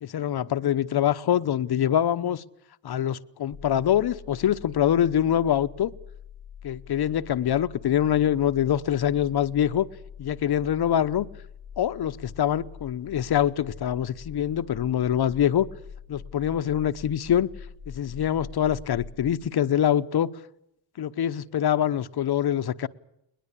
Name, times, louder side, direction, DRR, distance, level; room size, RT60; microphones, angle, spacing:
voice 1, 0.0-2.4 2.8-5.9 6.6-9.9 10.2-11.3 11.8-15.7 16.1-17.5 17.9-20.3 21.0-22.9, left 10 dB, 55° left, 0.9 m, -24 dB
sound 1, 3.5-19.3, left 7 dB, 15° left, 4.6 m, -44 dB
21.0 x 21.0 x 8.5 m
wide cardioid pair, 155°, 47 cm